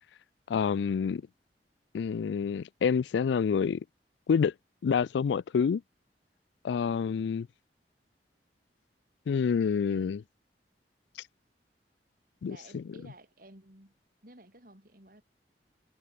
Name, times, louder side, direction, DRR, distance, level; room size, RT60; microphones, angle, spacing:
voice 1, 0.5-1.2 1.9-3.8 4.3-4.5 4.8-5.8 6.6-7.5 9.3-10.2 12.4-12.8, left 6 dB, 85° left, 0.3 m, -27 dB
voice 2, 12.4-14.0 14.2-15.2, right 1 dB, 50° right, 5.0 m, -53 dB
head